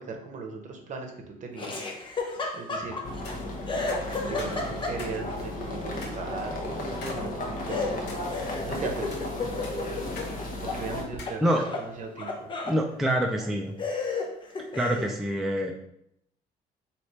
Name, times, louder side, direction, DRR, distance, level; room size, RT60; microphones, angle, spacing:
voice 1, 0.0-1.8 2.5-3.0 4.3-6.7 7.0-8.2 8.6-9.3 10.6-11.4 11.8-12.5, right 4 dB, 45° right, 3 dB, 0.8 m, -38 dB
Laughter, 1.6-3.3 3.7-5.3 7.7-10.8 11.1-12.8 13.4-13.5 13.8-15.2, left 3 dB, 30° left, 0.7 m, -33 dB
sound 1, 3.0-11.0, left 1 dB, 55° left, 1.0 m, -34 dB
sound 2, 3.2-3.4 3.9-5.2 5.5-5.6 6.0-6.2 7.0-7.2 7.7-8.2 8.9-9.2 9.6-10.3 10.6-10.7 11.2-11.4, left 3 dB, 90° left, 1.2 m, -43 dB
voice 2, 12.7-13.7 14.7-15.7, equal, ahead, 1 dB, 0.4 m, -26 dB
3.2 x 2.9 x 4.2 m, 0.75 s
cardioid pair, 110°, 17 cm